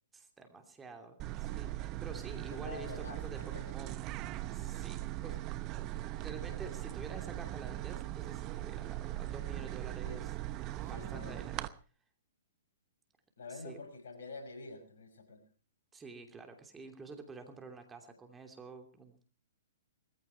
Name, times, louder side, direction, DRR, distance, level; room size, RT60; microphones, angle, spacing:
voice 1, 0.1-4.0 4.5-5.4 6.2-10.3 10.9-11.7 13.5-13.8 15.9-19.3, right 3 dB, 15° right, 5 dB, 2.9 m, -49 dB
sound 1, 1.2-11.7, right 15 dB, 35° right, 0.9 m, -40 dB
voice 2, 2.5-3.8 10.0-10.2 10.8-11.5 13.4-15.4, left 3 dB, 70° left, 6 dB, 5.5 m, -47 dB
20.0 x 15.0 x 4.6 m, 0.38 s
hypercardioid pair, 120°, 0 cm